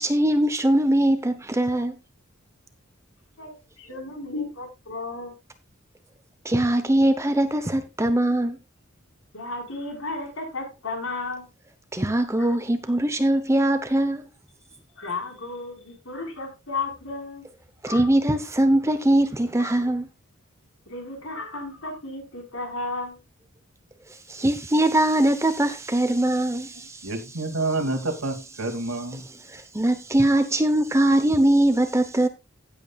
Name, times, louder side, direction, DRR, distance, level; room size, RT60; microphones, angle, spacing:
voice 1, 0.0-1.9 6.4-8.6 11.9-14.2 17.8-20.0 24.3-27.1 29.5-32.3, right 1 dB, 15° right, 0.8 m, -21 dB
voice 2, 3.8-5.3 9.3-11.4 12.4-12.5 15.0-17.5 17.8-18.1 19.6-19.7 20.9-23.2, left 3 dB, 65° left, 4.7 m, -33 dB
voice 3, 26.8-29.3, right 2 dB, 75° right, 2.6 m, -28 dB
16.0 x 8.3 x 2.4 m
head